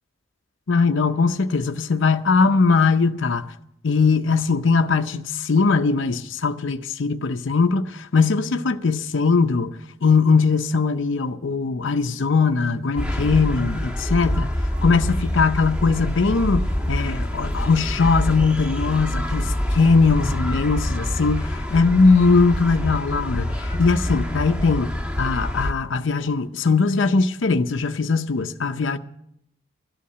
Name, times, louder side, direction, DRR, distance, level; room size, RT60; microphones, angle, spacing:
voice 1, 0.7-3.5 3.8-9.7 10.0-24.9 25.2-29.0, left 4 dB, 70° left, 0.6 m, -20 dB
sound 1, 13.0-25.7, left 1 dB, 5° right, 1.4 m, -26 dB
13.0 x 8.5 x 9.8 m
head